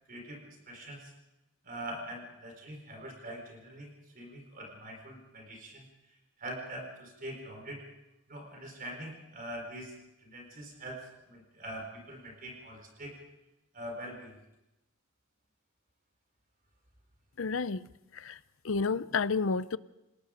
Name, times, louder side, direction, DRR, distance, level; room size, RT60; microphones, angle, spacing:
voice 1, 0.1-1.1 1.6-3.9 4.1-5.9 6.4-7.8 8.3-9.9 10.2-13.2 13.7-14.4, right 1 dB, 45° right, 4.5 m, -43 dB
voice 2, 17.4-17.8 18.1-18.4 18.6-19.8, left 4 dB, 65° left, 0.6 m, -30 dB
28.5 x 19.5 x 5.1 m
head